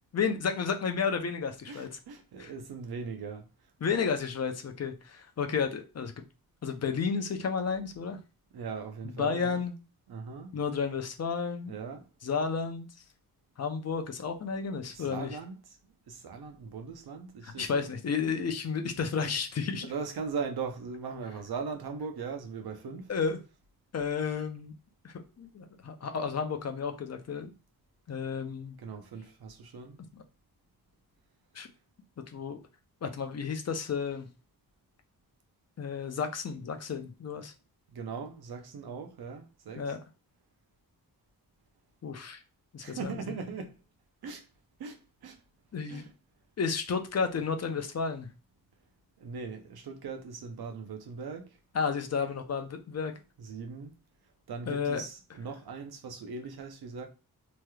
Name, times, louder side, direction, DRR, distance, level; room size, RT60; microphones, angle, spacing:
voice 1, 0.1-1.9 2.4-2.5 3.8-6.1 6.6-8.2 9.2-9.7 10.5-11.7 12.2-12.9 13.6-15.4 17.4-19.9 23.1-23.4 23.9-24.7 25.0-27.5 28.1-28.8 30.1-30.2 31.5-31.7 32.3-32.6 33.0-34.3 35.8-37.5 39.8-40.0 42.0-42.4 42.7-43.4 45.7-46.0 46.6-48.3 51.7-53.1 54.7-55.0, left 5 dB, 45° left, 0.6 m, -32 dB
voice 2, 1.7-3.5 8.5-9.6 10.1-10.6 11.7-12.1 14.9-15.8 16.1-17.8 19.8-23.1 28.8-30.0 37.9-39.9 42.8-43.8 44.2-44.4 44.8-45.4 45.9-46.1 49.2-51.6 53.4-54.0 54.5-57.1, right 5 dB, 80° right, 0.7 m, -39 dB
3.3 x 2.9 x 2.3 m
wide cardioid pair, 145°, 37 cm